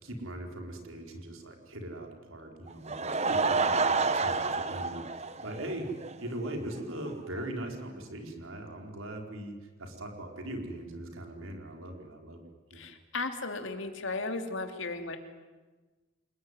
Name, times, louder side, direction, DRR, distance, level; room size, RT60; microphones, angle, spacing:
voice 1, 0.0-12.4 12.7-12.8, right 1 dB, 75° right, 3 dB, 4.7 m, -40 dB
Laughter / Crowd, 2.7-6.1 6.5-6.6 7.1-7.2 7.4-7.5, right 4 dB, 30° right, 1.2 m, -29 dB
voice 2, 12.7-15.2, left 3 dB, 60° left, 6 dB, 2.8 m, -35 dB
28.5 x 20.0 x 9.7 m, 1.3 s
head